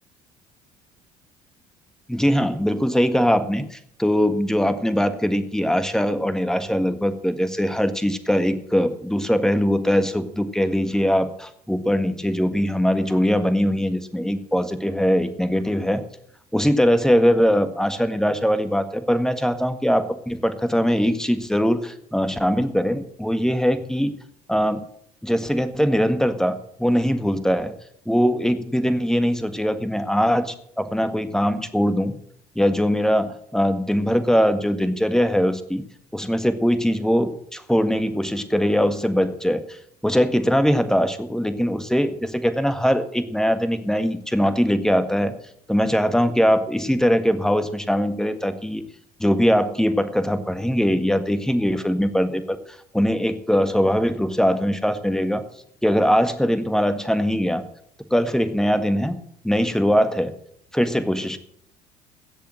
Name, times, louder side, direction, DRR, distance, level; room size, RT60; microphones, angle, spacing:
voice 1, 2.1-16.1 16.5-24.1 24.5-24.8 25.2-27.7 28.0-32.2 32.5-35.8 36.1-39.8 40.0-45.3 45.7-48.8 49.2-52.6 52.9-55.4 55.8-57.6 58.1-59.2 59.4-60.3 60.7-61.4, equal, 5° left, 10 dB, 1.6 m, -21 dB
16.5 x 6.8 x 7.7 m, 0.68 s
hypercardioid pair, 60°, 18 cm